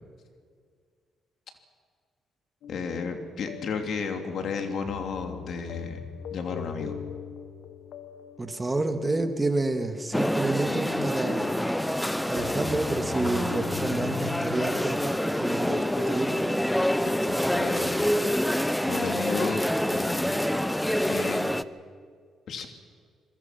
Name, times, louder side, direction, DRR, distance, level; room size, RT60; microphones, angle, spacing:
sound 1, 2.6-16.5, left 8 dB, 85° left, 1.4 m, -40 dB
voice 1, 2.7-6.0 6.3-7.0 17.2-18.2 18.8-20.4 21.0-21.4 22.5-22.7, left 5 dB, 65° left, 5 dB, 2.8 m, -33 dB
voice 2, 8.4-11.6 12.3-16.5, right 2 dB, 20° right, 7 dB, 2.0 m, -29 dB
sound 2, 10.1-21.6, equal, 5° left, 0.7 m, -27 dB
26.5 x 22.0 x 5.9 m, 2.1 s
cardioid pair, 90°, 0 cm